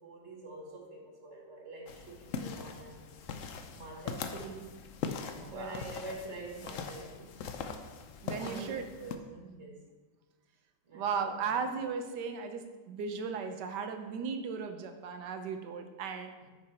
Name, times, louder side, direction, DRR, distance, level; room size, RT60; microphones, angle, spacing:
voice 1, 0.0-3.1 3.7-4.7 5.1-7.7 8.4-8.7 9.0-9.9 10.8-11.5, right 2 dB, 40° right, 0 dB, 1.6 m, -46 dB
sound 1, 1.9-9.2, left 5 dB, 70° left, 0.7 m, -41 dB
voice 2, 5.4-5.8 8.2-8.8 10.9-16.3, right 5 dB, 70° right, 7 dB, 1.4 m, -36 dB
9.9 x 6.4 x 4.3 m, 1.3 s
omnidirectional pair, 2.1 m